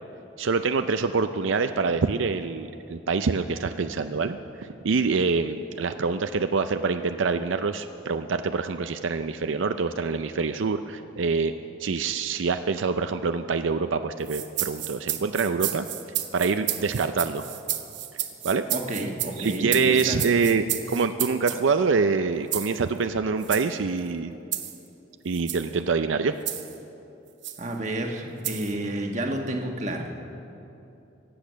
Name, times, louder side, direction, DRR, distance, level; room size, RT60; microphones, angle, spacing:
voice 1, 0.4-11.5 11.8-15.9 16.3-17.4 18.4-18.6 19.4-24.4 25.2-26.3, right 4 dB, 85° right, 9 dB, 0.5 m, -25 dB
sound 1, 14.2-21.6 22.5-22.8 23.4-23.7 24.5-24.8 25.3-25.7 26.5-26.8 27.4-27.6 28.4-28.7, right 13 dB, 70° right, 1.0 m, -31 dB
voice 2, 18.7-20.2 27.6-30.1, right 1 dB, 40° right, 2 dB, 1.3 m, -30 dB
23.5 x 8.8 x 6.3 m, 2.9 s
head